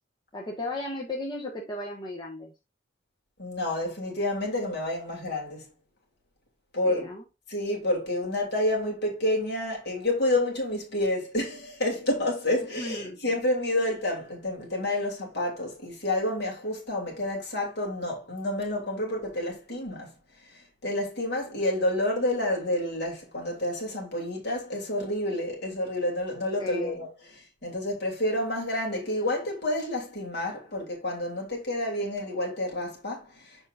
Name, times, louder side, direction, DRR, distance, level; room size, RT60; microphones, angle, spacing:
voice 1, 0.3-2.5 6.8-7.2 12.8-13.2 26.6-27.0, left 2 dB, 25° left, 1.5 m, -35 dB
voice 2, 3.4-5.7 6.7-7.1 7.5-20.1 20.8-27.1 27.6-33.3, left 1 dB, 65° left, 3.0 m, -29 dB
7.1 x 5.3 x 2.6 m
head